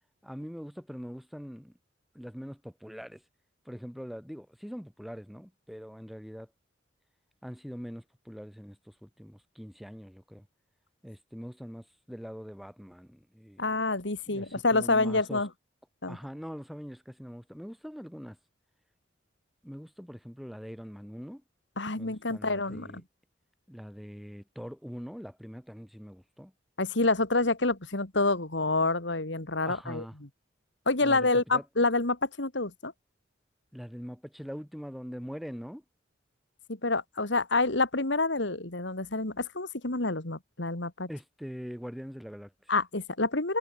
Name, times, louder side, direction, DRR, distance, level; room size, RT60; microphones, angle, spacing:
voice 1, 0.2-1.8 2.1-3.2 3.6-6.5 7.4-10.5 11.0-13.8 14.3-15.5 16.1-18.4 19.6-21.4 21.9-23.0 23.7-26.5 29.6-30.1 31.0-31.6 33.7-35.8 41.1-42.7, equal, ahead, 2.6 m, -43 dB
voice 2, 13.6-15.5 16.0-16.2 21.8-23.0 26.8-30.0 30.9-32.9 36.8-41.1 42.7-43.6, left 3 dB, 70° left, 2.7 m, -28 dB
head